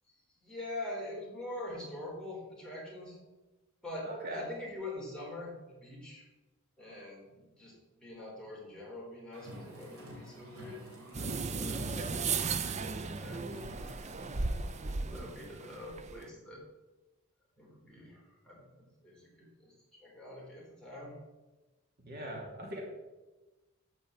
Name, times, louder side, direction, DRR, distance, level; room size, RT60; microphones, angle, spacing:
voice 1, 0.4-3.2 3.8-6.2 6.8-7.7 8.0-10.8 11.5-12.1 13.1-13.4 13.9-14.1 15.0-16.6 17.6-19.7 20.0-21.2, left 1 dB, 5° left, -5 dB, 3.7 m, -44 dB
voice 2, 4.0-4.4 11.9-12.8 22.0-22.8, right 1 dB, 50° right, -2 dB, 2.7 m, -42 dB
Car, 9.3-15.0, equal, 75° right, 3.6 m, -50 dB
sound 1, 11.1-16.3, right 4 dB, 35° right, 0.6 m, -36 dB
12.0 x 5.4 x 8.2 m, 1.1 s
head